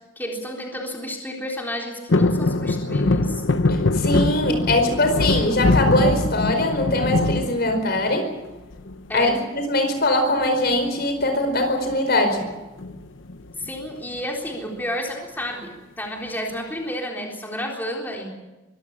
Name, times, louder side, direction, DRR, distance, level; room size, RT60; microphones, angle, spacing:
voice 1, 0.2-3.4 9.1-9.4 13.6-18.3, equal, 10° left, -1 dB, 3.8 m, -31 dB
sound 1, 2.1-8.3 8.7-9.3 10.6-11.0 11.3-11.4 11.6-11.9 12.8-13.7 14.2-14.3, left 2 dB, 75° left, 0.9 m, -22 dB
voice 2, 3.7-8.3 9.1-12.5, left 1 dB, 55° left, 6 dB, 4.8 m, -22 dB
24.0 x 16.0 x 8.6 m, 1.1 s
head